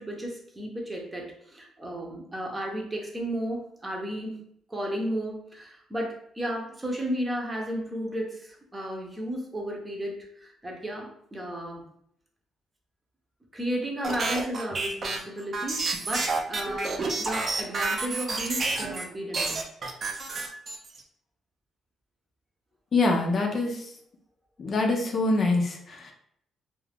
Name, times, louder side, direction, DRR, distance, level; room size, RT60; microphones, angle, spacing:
voice 1, 0.0-4.4 4.7-11.8 13.5-19.6, equal, 20° right, 0 dB, 0.8 m, -33 dB
sound 1, 14.0-19.0 19.3-21.0, right 3 dB, 45° right, 0.5 m, -29 dB
voice 2, 22.9-23.8 24.6-26.1, left 2 dB, 45° left, 1 dB, 0.6 m, -24 dB
2.4 x 2.4 x 3.4 m, 0.70 s
cardioid pair, 90°, 0 cm